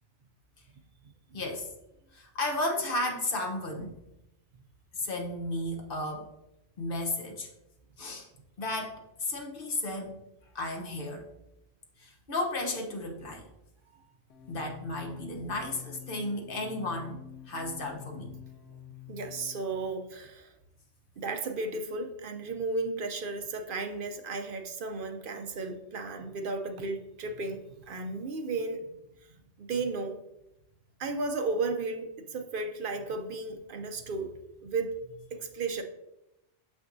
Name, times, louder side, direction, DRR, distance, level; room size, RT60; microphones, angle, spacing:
voice 1, 1.3-1.7 2.1-3.9 4.9-6.3 6.8-7.5 8.0-8.3 8.6-10.2 10.5-11.2 12.0-13.4 14.5-18.3, left 2 dB, 50° left, 1 dB, 1.1 m, -34 dB
sound 1, 14.3-20.0, left 11 dB, 80° left, 1.0 m, -48 dB
voice 2, 19.1-20.5 21.2-28.9 29.3-30.2 31.0-35.8, right 3 dB, 55° right, 6 dB, 0.6 m, -34 dB
6.9 x 6.0 x 2.6 m, 0.88 s
omnidirectional pair, 1.3 m